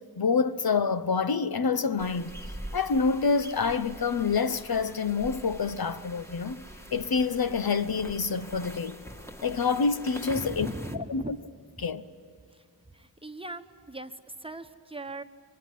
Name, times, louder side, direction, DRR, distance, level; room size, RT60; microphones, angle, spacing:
voice 1, 0.2-2.4 2.7-6.6 6.9-9.0 9.4-10.7 11.1-11.4 11.8-12.0, left 5 dB, 65° left, 0.9 m, -27 dB
sound 1, 2.0-11.0, equal, 5° left, 1.7 m, -44 dB
voice 2, 10.3-11.3 11.8-11.9 12.5-12.7 12.9-15.2, right 2 dB, 15° right, 1.2 m, -40 dB
24.0 x 20.0 x 9.4 m
wide cardioid pair, 60°, 40 cm